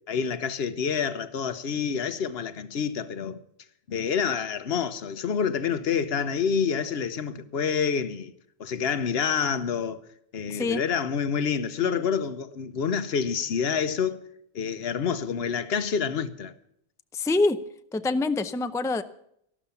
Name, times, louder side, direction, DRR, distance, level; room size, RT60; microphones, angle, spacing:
voice 1, 0.1-3.4 3.9-8.3 8.6-10.0 10.3-14.2 14.5-16.5, left 6 dB, 75° left, 1.1 m, -27 dB
voice 2, 10.5-10.8 17.1-17.6 17.9-19.0, left 3 dB, 5° left, 0.4 m, -25 dB
12.5 x 12.5 x 7.0 m
omnidirectional pair, 1.1 m